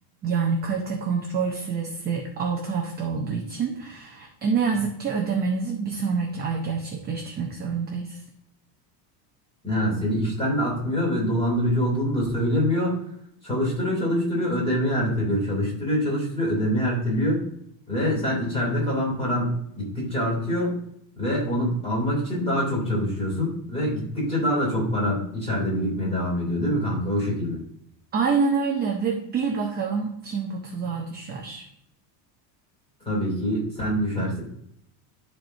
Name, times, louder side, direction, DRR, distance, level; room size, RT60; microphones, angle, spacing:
voice 1, 0.2-8.2 28.1-31.6 34.2-34.3, right 5 dB, 20° right, 1 dB, 0.6 m, -27 dB
voice 2, 9.6-13.0 13.4-17.4 17.9-20.8 21.2-27.6 33.0-34.4, equal, 10° left, -4 dB, 3.0 m, -25 dB
13.5 x 4.5 x 2.7 m, 0.71 s
cardioid pair, 170°, 49 cm